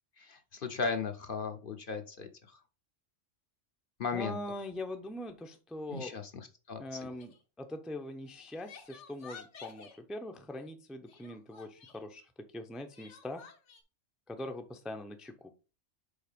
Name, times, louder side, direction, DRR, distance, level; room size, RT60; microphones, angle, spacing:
voice 1, 0.2-2.3 4.0-4.4 5.9-7.1, left 5 dB, 50° left, 7 dB, 0.9 m, -36 dB
voice 2, 4.1-6.1 6.8-13.4 14.3-15.5, left 1 dB, ahead, 6 dB, 0.5 m, -42 dB
Crying sobbing, 7.1-7.4 8.2-10.0 11.1-12.0 12.9-13.8, left 6 dB, 70° left, 1.4 m, -52 dB
5.3 x 4.3 x 5.3 m, 0.34 s
omnidirectional pair, 1.3 m